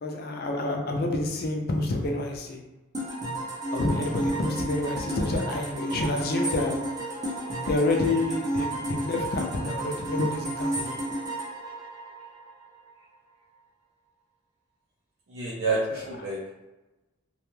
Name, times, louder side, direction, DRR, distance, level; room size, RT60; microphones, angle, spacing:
voice 1, 0.0-2.6 3.7-6.8 7.7-11.0 15.9-16.0, left 2 dB, 45° left, 2 dB, 0.4 m, -28 dB
sound 1, 2.9-12.7, right 1 dB, 15° right, 0.4 m, -32 dB
voice 2, 15.3-16.6, right 3 dB, 75° right, -5 dB, 0.5 m, -29 dB
2.6 x 2.3 x 3.0 m, 1.1 s
head